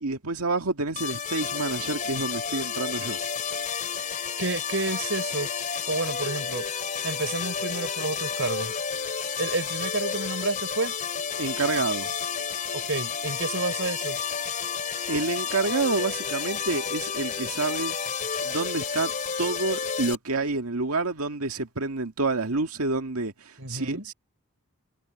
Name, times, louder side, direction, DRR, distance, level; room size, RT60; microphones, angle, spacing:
voice 1, 0.0-3.2 11.4-12.1 15.1-18.0 18.4-19.1 19.4-24.1, right 3 dB, 80° right, 2.0 m, -28 dB
sound 1, 1.0-20.2, left 6 dB, 35° left, 3.3 m, -31 dB
voice 2, 4.4-5.5 5.9-6.7 7.0-8.7 9.4-10.9 12.7-14.2 23.6-24.1, right 3 dB, 60° right, 4.9 m, -30 dB
head